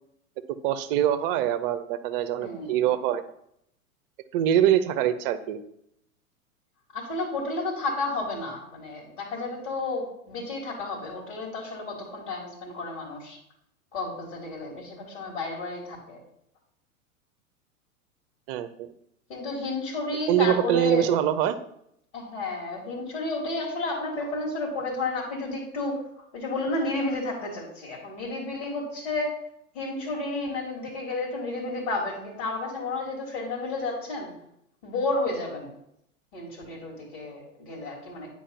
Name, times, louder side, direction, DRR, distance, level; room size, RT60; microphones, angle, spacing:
voice 1, 0.6-3.3 4.3-5.6 18.5-18.9 20.3-21.6, right 11 dB, 40° right, 12 dB, 0.8 m, -24 dB
voice 2, 2.4-2.8 6.9-13.4 13.9-16.2 19.3-21.1 22.1-29.4 29.7-34.3 34.8-35.7 36.3-38.3, left 2 dB, 60° left, -3 dB, 3.6 m, -31 dB
10.0 x 4.7 x 5.6 m, 0.75 s
figure-of-eight pair, 95°, 43 cm